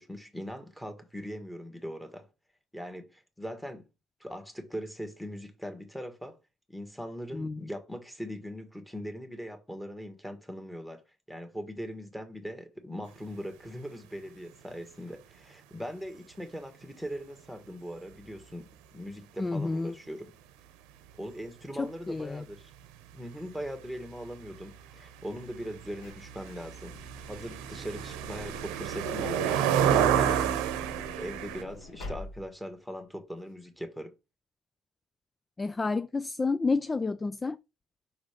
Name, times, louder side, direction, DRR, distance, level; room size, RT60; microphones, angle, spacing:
voice 1, 0.0-2.3 2.7-3.8 4.2-6.4 6.7-11.0 11.3-20.4 21.2-22.7 23.1-27.0 27.2-29.6 29.9-30.6 31.2-34.1, equal, ahead, 1.6 m, -40 dB
voice 2, 7.3-7.7 19.4-20.0 21.8-22.4 35.6-37.6, left 3 dB, 20° left, 0.3 m, -30 dB
sound 1, 23.6-23.7 23.9-31.6, right 9 dB, 85° right, 0.8 m, -29 dB
Truck / Door, 25.9-29.1 30.1-32.7 33.4-33.5 33.7-33.8, left 2 dB, 80° left, 2.9 m, -47 dB
5.6 x 3.9 x 5.0 m
supercardioid pair, 90°, 0 cm